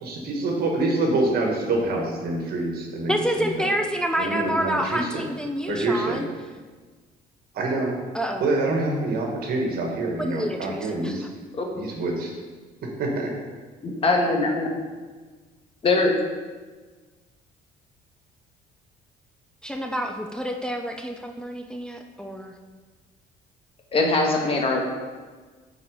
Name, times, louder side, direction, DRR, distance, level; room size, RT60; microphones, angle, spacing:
voice 1, 0.0-3.7 4.2-5.3 5.7-6.2 7.5-8.0 8.4-11.3 11.7-12.3 13.0-13.3, right 2 dB, 65° right, 1 dB, 1.6 m, -26 dB
voice 2, 3.1-6.3 8.1-8.5 10.2-11.2 19.6-22.5, equal, 5° left, 3 dB, 0.5 m, -28 dB
voice 3, 13.8-14.7 15.8-16.1 23.9-24.8, left 3 dB, 35° left, 1 dB, 1.5 m, -21 dB
7.7 x 4.9 x 4.9 m, 1.4 s
cardioid pair, 110°, 17 cm